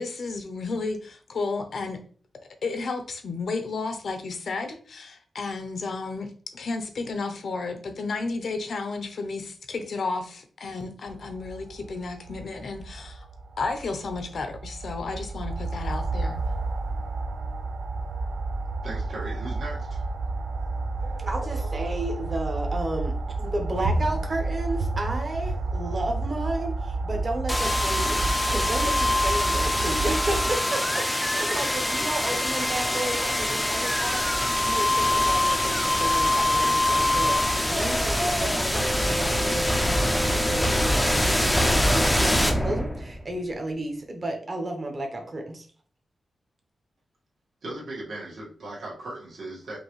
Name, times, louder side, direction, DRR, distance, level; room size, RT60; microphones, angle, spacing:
voice 1, 0.0-2.0 2.6-13.3 13.6-16.4, left 3 dB, 60° left, 0.6 m, -32 dB
sound 1, 11.1-30.5, right 3 dB, 90° right, 0.5 m, -30 dB
voice 2, 18.8-20.0 47.6-49.8, right 2 dB, 65° right, 1.7 m, -37 dB
voice 3, 21.3-34.2 34.6-45.6, right 1 dB, 30° right, 0.9 m, -32 dB
sound 2, 27.5-43.3, left 1 dB, 5° left, 0.5 m, -24 dB
5.2 x 2.7 x 3.1 m
wide cardioid pair, 160°, 0 cm